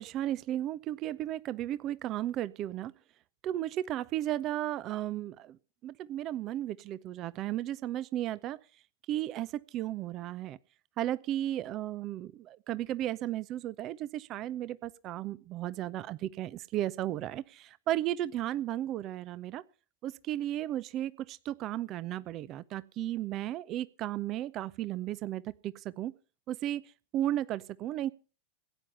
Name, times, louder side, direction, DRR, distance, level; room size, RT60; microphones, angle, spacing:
voice 1, 0.0-2.9 3.4-5.6 5.8-8.6 9.1-10.6 11.0-19.6 20.0-26.1 26.5-26.8 27.1-28.1, right 13 dB, 35° right, 18 dB, 0.6 m, -34 dB
17.0 x 9.8 x 5.6 m, 0.36 s
figure-of-eight pair, 90°, 0 cm